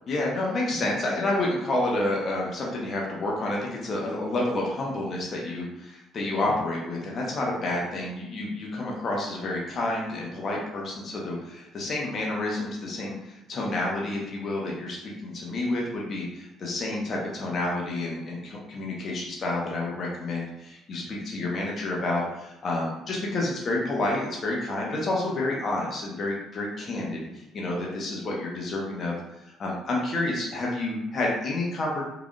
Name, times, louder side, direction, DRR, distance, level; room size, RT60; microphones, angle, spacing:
voice 1, 0.1-29.2 29.6-32.0, left 2 dB, 50° left, -3 dB, 0.8 m, -29 dB
3.3 x 2.4 x 2.4 m, 0.92 s
hypercardioid pair, 55°, 0 cm